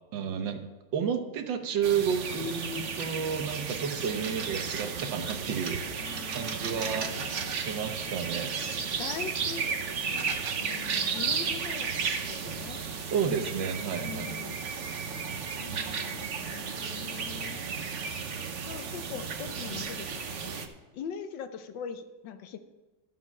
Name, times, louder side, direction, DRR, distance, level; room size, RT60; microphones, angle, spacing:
voice 1, 0.1-0.6 0.9-7.1 7.4-8.6 13.1-14.3, right 7 dB, 90° right, 6 dB, 1.8 m, -31 dB
sound 1, 1.8-20.7, right 5 dB, 50° right, 1.0 m, -34 dB
voice 2, 6.0-7.5 9.0-9.8 10.1-11.9 12.2-12.8 13.9-14.6 15.5-17.7 18.6-20.6 20.9-22.6, left 7 dB, 85° left, 9 dB, 1.5 m, -42 dB
12.0 x 7.6 x 5.4 m, 1.2 s
omnidirectional pair, 1.9 m